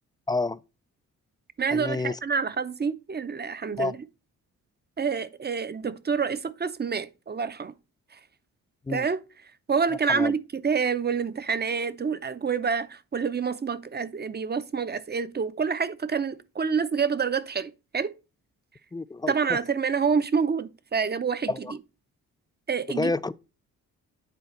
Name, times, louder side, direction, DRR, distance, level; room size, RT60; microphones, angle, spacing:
voice 1, 0.3-0.6 1.7-2.2 3.8-3.9 8.9-9.1 10.1-10.3 18.9-19.6 21.5-21.7 22.9-23.3, left 3 dB, 15° left, 0.3 m, -29 dB
voice 2, 1.6-4.0 5.0-7.7 8.9-9.2 9.7-18.1 19.3-21.8 22.7-23.1, right 6 dB, 30° right, 0.7 m, -27 dB
9.2 x 3.9 x 4.4 m
cardioid pair, 65°, 35 cm